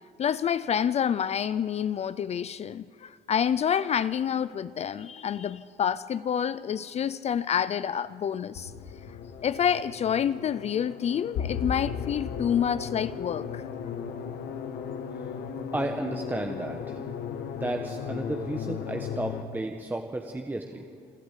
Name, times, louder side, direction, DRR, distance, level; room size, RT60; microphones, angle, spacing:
voice 1, 0.2-8.7 9.4-13.6, left 8 dB, 40° left, 0.5 m, -28 dB
sound 1, 8.5-19.4, left 7 dB, 70° left, 1.5 m, -36 dB
voice 2, 15.7-17.0 17.6-20.9, right 2 dB, 10° right, 1.1 m, -33 dB
27.5 x 12.0 x 8.2 m
cardioid pair, 110°, 17 cm